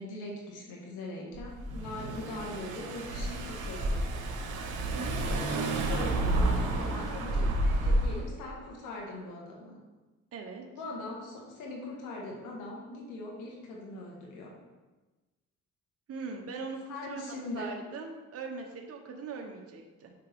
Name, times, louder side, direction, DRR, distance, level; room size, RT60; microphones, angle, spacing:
voice 1, 0.0-4.0 5.5-9.8 10.7-14.5 16.9-17.7, left 2 dB, 90° left, -1 dB, 1.6 m, -41 dB
Car / Engine, 1.3-8.3, right 1 dB, 85° right, 1.1 m, -30 dB
voice 2, 10.3-10.7 16.1-20.1, right 4 dB, 50° right, 2 dB, 1.0 m, -41 dB
6.5 x 5.4 x 3.6 m, 1.2 s
cardioid pair, 90°, 30 cm